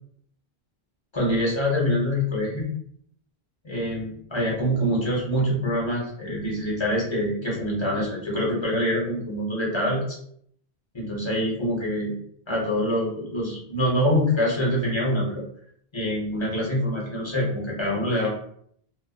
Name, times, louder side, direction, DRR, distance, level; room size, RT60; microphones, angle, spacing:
voice 1, 1.1-2.7 3.6-10.2 10.9-12.1 12.5-15.4 15.9-18.3, equal, 30° left, -4 dB, 0.7 m, -25 dB
2.4 x 2.2 x 2.3 m, 0.66 s
omnidirectional pair, 1.1 m